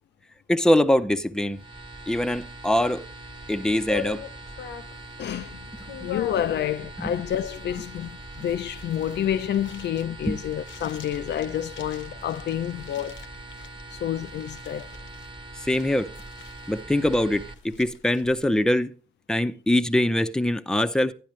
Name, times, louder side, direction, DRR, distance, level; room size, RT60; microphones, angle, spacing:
voice 1, 0.5-1.6 2.1-3.0 3.5-4.2 6.0-6.1 10.3-10.4 15.7-16.1 16.7-18.9 19.3-21.1, left 1 dB, 5° left, 0.6 m, -23 dB
sound 1, 1.5-17.5, right 2 dB, 25° right, 1.2 m, -42 dB
sound 2, 3.9-18.6, left 8 dB, 85° left, 0.9 m, -43 dB
voice 2, 5.2-5.7 6.0-13.3 13.9-14.9, left 10 dB, 65° left, 0.4 m, -29 dB
11.5 x 10.5 x 3.1 m
cardioid pair, 95°, 19 cm